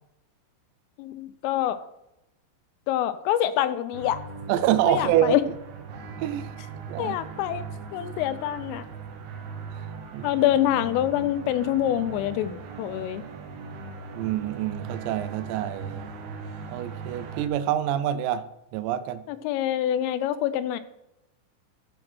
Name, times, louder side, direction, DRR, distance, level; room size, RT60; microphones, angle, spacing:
voice 1, 1.0-1.8 2.9-4.2 4.9-5.4 7.0-7.6 7.9-8.8 10.2-13.2 19.3-20.8, left 12 dB, 85° left, 13 dB, 3.2 m, -25 dB
sound 1, 3.9-17.5, right 4 dB, 70° right, 2.5 m, -39 dB
voice 2, 4.5-5.4 6.2-6.5 6.9-7.2 10.1-10.3 14.2-16.0 16.7-18.5 18.7-19.2, right 12 dB, 85° right, 11 dB, 2.4 m, -26 dB
13.5 x 5.2 x 6.1 m, 0.88 s
omnidirectional pair, 5.8 m